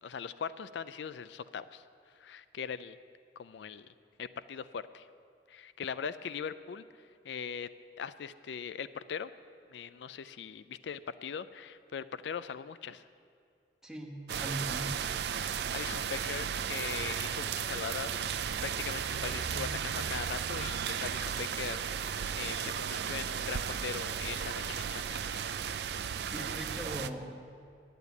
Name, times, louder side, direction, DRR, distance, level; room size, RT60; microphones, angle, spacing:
voice 1, 0.0-1.8 2.2-3.0 3.4-3.9 4.2-5.1 5.5-6.8 7.2-7.7 8.0-9.3 9.7-13.0 15.4-15.5 15.7-25.5, left 7 dB, 85° left, 14 dB, 0.4 m, -40 dB
voice 2, 13.8-15.1 26.3-27.7, right 1 dB, 5° right, -1 dB, 1.2 m, -40 dB
sound 1, 14.3-27.1, right 7 dB, 70° right, 0.4 m, -35 dB
9.9 x 9.1 x 9.4 m, 2.3 s
head